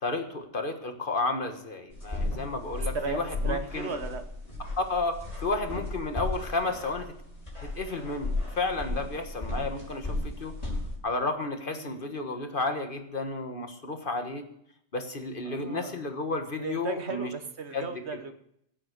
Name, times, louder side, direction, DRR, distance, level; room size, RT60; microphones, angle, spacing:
voice 1, 0.0-3.9 4.8-7.1 7.6-10.5 11.0-14.4 14.9-17.3 17.7-17.9, left 3 dB, 50° left, 6 dB, 1.6 m, -32 dB
sound 1, 1.9-11.0, left 2 dB, 30° left, 5.5 m, -35 dB
voice 2, 2.9-4.2 11.7-12.0 15.4-16.0 16.6-18.3, right 4 dB, 65° right, 8 dB, 1.5 m, -35 dB
16.5 x 7.9 x 6.6 m, 0.72 s
omnidirectional pair, 1.2 m